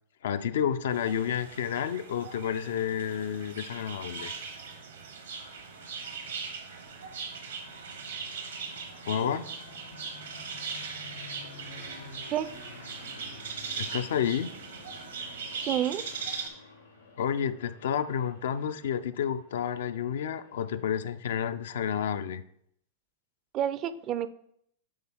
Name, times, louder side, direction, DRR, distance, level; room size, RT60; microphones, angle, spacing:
voice 1, 0.2-4.3 9.0-9.5 13.8-14.5 17.2-22.4, left 8 dB, 65° left, 11 dB, 0.4 m, -30 dB
sound 1, 0.9-16.5, right 5 dB, 75° right, 1.1 m, -40 dB
sound 2, 4.4-21.3, left 3 dB, 85° left, 1.4 m, -51 dB
voice 2, 15.6-16.0 23.5-24.3, right 11 dB, 35° right, 14 dB, 0.4 m, -29 dB
8.6 x 3.3 x 4.3 m, 0.70 s
figure-of-eight pair, 95°, 0 cm